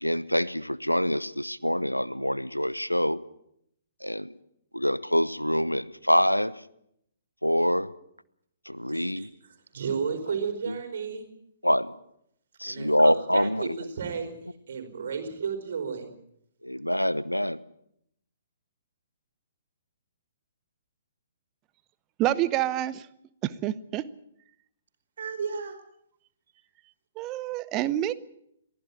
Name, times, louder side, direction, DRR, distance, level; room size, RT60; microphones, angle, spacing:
voice 1, 0.0-3.2 4.0-4.3 4.7-6.5 7.4-7.9 8.7-9.3 10.7-10.8 11.6-11.9 12.6-13.7 16.6-17.6, equal, 90° left, 0.9 m, -25 dB
voice 2, 8.9-11.3 12.6-14.4 14.7-16.1 25.2-25.8, right 6 dB, 55° right, 4.7 m, -33 dB
voice 3, 22.2-23.1 23.4-24.0 27.2-28.1, right 13 dB, 25° right, 0.9 m, -27 dB
23.0 x 15.5 x 8.6 m
figure-of-eight pair, 125°, 0 cm